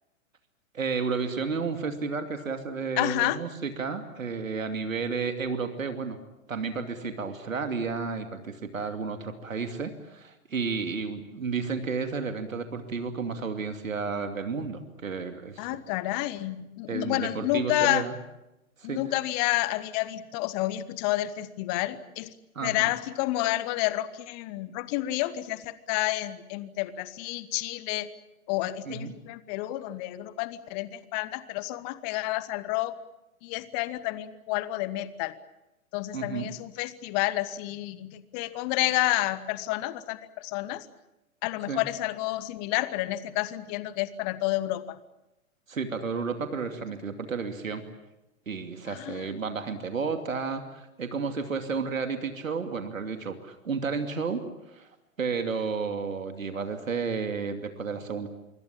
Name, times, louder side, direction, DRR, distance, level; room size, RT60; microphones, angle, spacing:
voice 1, 0.7-6.2 6.5-15.8 16.9-18.2 18.8-19.0 22.5-22.9 28.9-29.1 36.1-36.5 41.7-41.8 45.7-47.8 48.5-54.9 55.2-58.3, right 5 dB, 65° right, 7 dB, 2.7 m, -32 dB
voice 2, 3.0-3.4 15.6-18.1 18.8-22.3 22.6-28.1 28.5-33.0 33.4-35.3 35.9-40.9 41.4-45.0 48.9-49.3, left 17 dB, 30° left, 15 dB, 1.4 m, -30 dB
26.5 x 23.5 x 8.6 m, 0.93 s
figure-of-eight pair, 110°, 42 cm